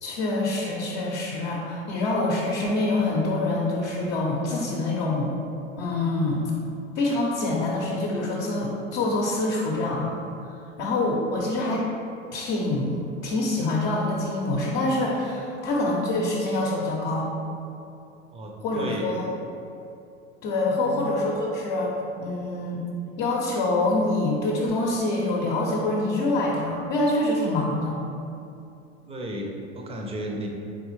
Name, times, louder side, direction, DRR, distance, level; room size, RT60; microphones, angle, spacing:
voice 1, 0.0-5.3 5.8-6.5 6.9-10.2 10.8-11.9 12.3-17.3 18.6-19.3 20.4-21.9 22.2-22.8 23.2-28.0, left 2 dB, 50° left, -4 dB, 0.8 m, -25 dB
voice 2, 18.3-19.1 20.7-21.1 29.1-30.5, equal, 15° right, 0 dB, 0.6 m, -34 dB
4.0 x 3.6 x 3.1 m, 2.6 s
hypercardioid pair, 90°, 35 cm